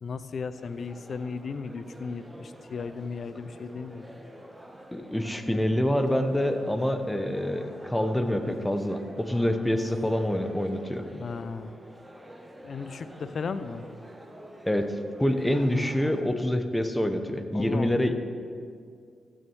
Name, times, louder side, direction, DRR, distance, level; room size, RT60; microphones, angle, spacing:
voice 1, 0.0-4.1 11.0-11.7 12.6-13.9 17.5-18.0, left 5 dB, 60° left, 12 dB, 0.6 m, -36 dB
sound 1, 0.6-16.2, right 1 dB, 10° right, 1.2 m, -48 dB
voice 2, 4.9-11.0 14.7-18.1, left 1 dB, 10° left, 8 dB, 1.1 m, -26 dB
15.0 x 6.4 x 4.7 m, 2.3 s
supercardioid pair, 50°, 0 cm